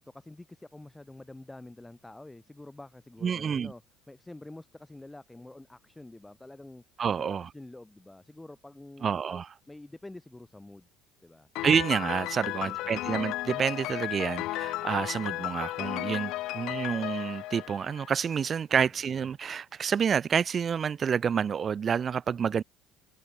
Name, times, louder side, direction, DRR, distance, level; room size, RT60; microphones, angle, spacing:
voice 1, 0.0-3.8 4.1-6.8 7.2-10.9 11.2-11.5 12.4-13.3, left 2 dB, 5° left, 4.1 m, -48 dB
voice 2, 3.2-3.7 7.0-7.5 9.0-9.5 11.6-22.6, right 7 dB, 30° right, 1.1 m, -28 dB
Piano, 11.6-18.4, left 18 dB, 65° left, 1.8 m, -34 dB
cardioid pair, 140°, 0 cm